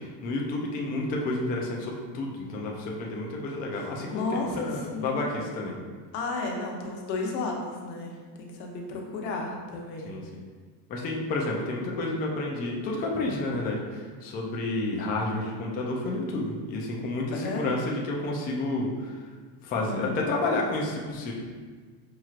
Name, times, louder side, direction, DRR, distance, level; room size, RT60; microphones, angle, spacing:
voice 1, 0.2-5.7 10.0-10.2 10.9-19.2 19.6-21.3, left 2 dB, 20° left, -2 dB, 0.3 m, -30 dB
voice 2, 4.1-5.3 6.1-8.1 8.4-10.1 17.3-17.7 19.8-20.2, left 3 dB, 85° left, 0 dB, 1.0 m, -33 dB
5.6 x 3.0 x 2.4 m, 1.5 s
cardioid pair, 135°, 49 cm